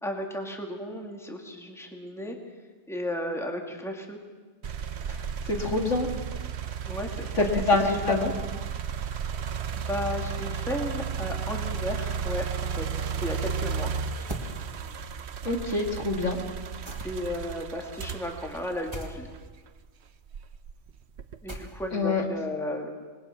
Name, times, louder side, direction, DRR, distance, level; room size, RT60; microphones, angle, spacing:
voice 1, 0.0-2.4 2.9-4.2 6.8-7.5 7.8-8.3 9.1-9.5 9.9-13.9 17.0-19.3 21.4-23.1, left 1 dB, ahead, 2 dB, 2.3 m, -34 dB
sound 1, 4.6-19.7 20.3-21.5, right 6 dB, 60° right, 1.0 m, -34 dB
voice 2, 5.1-6.1 7.3-8.3 15.4-16.4 21.9-22.2, left 3 dB, 65° left, 2 dB, 2.5 m, -26 dB
sound 2, 14.3-14.5 16.9-17.4 18.9-19.2 21.5-22.0, right 2 dB, 20° right, 2.2 m, -37 dB
26.5 x 21.0 x 5.9 m, 1.4 s
omnidirectional pair, 1.4 m